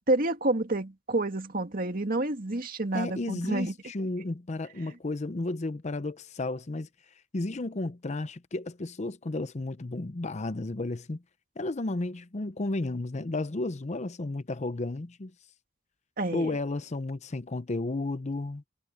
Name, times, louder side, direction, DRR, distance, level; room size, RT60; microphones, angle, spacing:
voice 1, 0.1-3.7 16.2-16.5, right 2 dB, 50° right, 2.2 m, -29 dB
voice 2, 2.9-6.9 7.3-11.2 11.6-15.3 16.3-18.6, left 2 dB, 40° left, 0.7 m, -33 dB
head